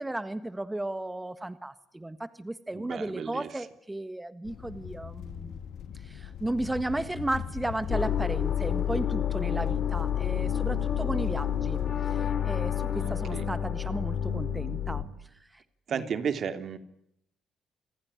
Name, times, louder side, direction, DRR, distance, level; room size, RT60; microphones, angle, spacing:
voice 1, 0.0-5.7 5.9-15.6 15.9-16.1, right 1 dB, 10° right, 12 dB, 1.5 m, -35 dB
voice 2, 2.8-3.5 9.5-9.8 13.0-13.5 15.9-16.8, right 7 dB, 60° right, 9 dB, 2.9 m, -34 dB
sound 1, 4.4-12.0, left 8 dB, 80° left, 2.3 m, -40 dB
sound 2, 7.9-15.0, left 9 dB, 55° left, 5.0 m, -29 dB
28.5 x 20.5 x 9.9 m, 0.77 s
cardioid pair, 90°, 0 cm